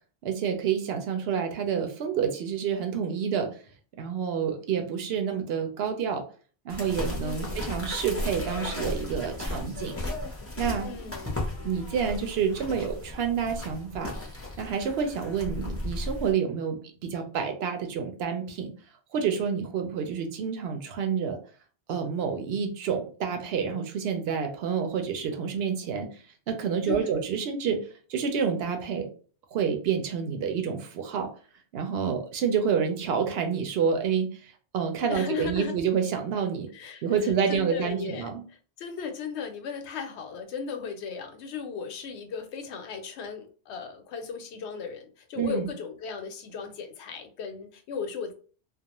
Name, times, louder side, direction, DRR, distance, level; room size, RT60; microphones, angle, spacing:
voice 1, 0.2-3.5 4.0-6.2 6.6-9.9 10.6-10.9 11.6-14.1 14.6-18.7 19.1-21.4 21.9-26.1 26.5-29.1 29.5-31.3 31.7-36.7 37.0-38.4 45.4-45.7, right 7 dB, 75° right, 5 dB, 0.8 m, -28 dB
sound 1, 6.7-16.3, left 1 dB, 20° left, 0.5 m, -35 dB
voice 2, 7.2-7.6 10.8-11.4 26.9-27.2 35.1-35.7 36.7-37.0 37.5-48.3, left 6 dB, 90° left, 5 dB, 0.9 m, -36 dB
2.3 x 2.1 x 2.9 m, 0.40 s
omnidirectional pair, 1.1 m